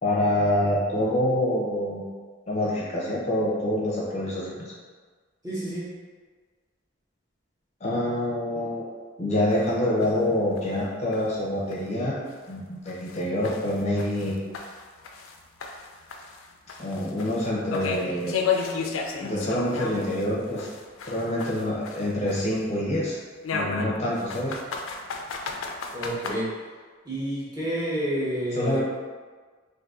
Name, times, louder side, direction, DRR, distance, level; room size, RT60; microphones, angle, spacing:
voice 1, 0.0-2.1 2.5-4.7 7.8-8.8 9.2-12.2 12.5-14.4 16.8-18.6 19.2-20.7 21.1-23.2 23.5-24.5 28.5-28.8, left 1 dB, 35° left, -6 dB, 0.5 m, -26 dB
voice 2, 5.4-5.9 25.9-26.5 27.0-28.8, right 1 dB, 20° right, -8 dB, 0.7 m, -29 dB
sound 1, 9.5-9.6 10.0-10.1 10.6-10.7 11.1-11.2 11.7-11.8 12.3-12.4 12.9-15.4 15.6-20.3 20.6-22.6 23.4-26.3, left 5 dB, 90° left, 0.4 m, -32 dB
2.6 x 2.5 x 3.5 m, 1.5 s
head